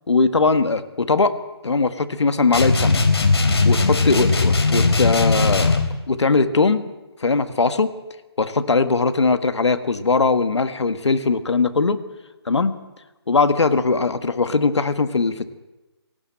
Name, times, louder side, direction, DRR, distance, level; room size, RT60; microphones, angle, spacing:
voice 1, 0.1-1.3 1.6-3.0 3.6-5.8 6.1-6.9 7.2-7.9 8.4-12.0 12.5-12.8 13.3-15.5, left 4 dB, 90° left, 10 dB, 1.7 m, -20 dB
sound 1, 2.5-5.9, left 3 dB, 70° left, 3.8 m, -18 dB
19.0 x 18.0 x 7.7 m, 1.1 s
hypercardioid pair, 170°, 14 cm